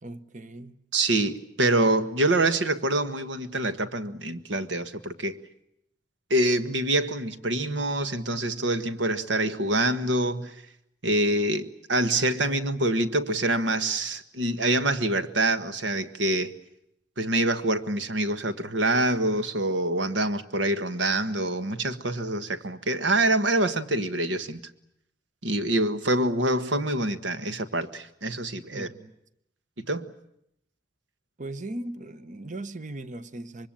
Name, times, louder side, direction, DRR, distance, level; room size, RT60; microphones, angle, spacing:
voice 1, 0.0-0.7 28.7-29.1 31.4-33.7, right 2 dB, 45° right, 1.0 m, -38 dB
voice 2, 0.9-5.4 6.3-10.5 11.0-16.5 17.2-24.6 25.4-28.9 29.8-30.1, right 1 dB, 80° right, 1.5 m, -26 dB
25.5 x 23.0 x 8.8 m
head